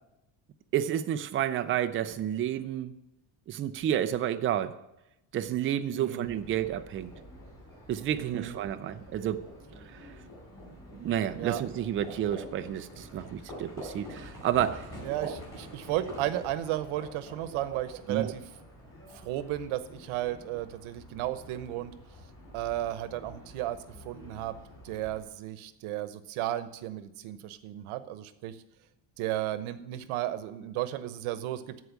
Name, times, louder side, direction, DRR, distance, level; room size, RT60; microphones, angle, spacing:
voice 1, 0.7-2.9 3.5-4.7 5.3-7.1 7.9-9.4 9.9-10.1 10.9-15.4 17.7-17.8 18.1-18.3, right 10 dB, 30° right, 9 dB, 0.4 m, -30 dB
voice 2, 5.9-6.3 8.1-8.5 11.4-11.6 15.0-18.4 19.1-21.9 22.5-23.8 24.0-24.5 24.8-28.6 29.2-31.8, right 13 dB, 80° right, 13 dB, 1.0 m, -34 dB
Livestock farm animals working animals, 6.2-25.2, equal, 10° left, 5.4 m, -47 dB
14.0 x 4.8 x 8.3 m, 0.90 s
cardioid pair, 180°, 47 cm